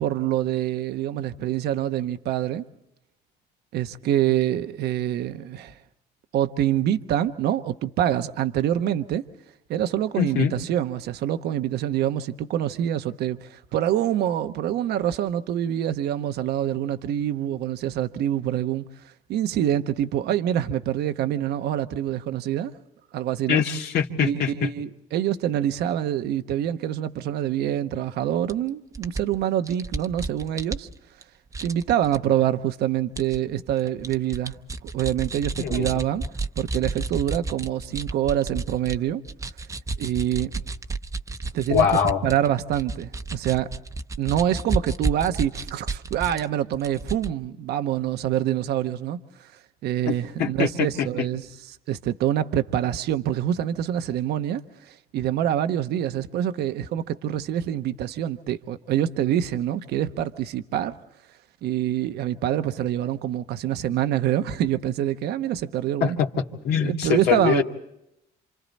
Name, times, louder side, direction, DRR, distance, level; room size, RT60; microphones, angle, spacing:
voice 1, 0.0-2.6 3.7-5.8 6.3-9.2 9.7-22.7 23.1-23.6 24.2-30.9 31.6-34.6 34.8-36.2 36.6-39.2 40.0-40.5 41.5-43.7 44.2-49.5 49.8-51.4 51.9-60.9 61.6-66.2 66.8-67.6, right 11 dB, 75° right, 1.1 m, -26 dB
voice 2, 10.1-10.5 23.5-24.5 35.6-35.9 41.7-42.2 50.1-50.2 50.4-51.1 66.0-66.3 66.6-67.6, left 8 dB, 70° left, 2.2 m, -23 dB
sound 1, 28.5-28.6 28.9-31.2 31.5-32.2 33.2-33.4 33.8-39.0 39.2-46.5 46.7-47.3, right 3 dB, 20° right, 0.8 m, -31 dB
28.5 x 27.0 x 4.2 m
cardioid pair, 110°, 17 cm